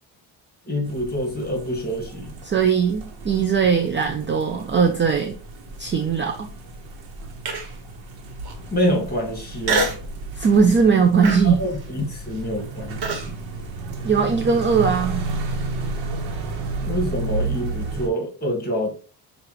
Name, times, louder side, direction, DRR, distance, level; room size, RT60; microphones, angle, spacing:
voice 1, 0.6-2.3 8.7-10.0 11.4-13.4 16.8-19.0, equal, 20° left, 1 dB, 1.8 m, -26 dB
sound 1, 0.8-18.1, right 3 dB, 90° right, 1.2 m, -32 dB
voice 2, 2.4-5.4 5.8-6.5 10.3-11.6 14.0-15.2, right 6 dB, 25° right, 4 dB, 0.4 m, -19 dB
Human voice, 7.5-7.9 8.4-8.5 9.6-10.1 10.5-10.8 11.2-13.3, right 3 dB, 55° right, 1.4 m, -26 dB
6.5 x 2.6 x 3.0 m, 0.39 s
cardioid pair, 115°, 45 cm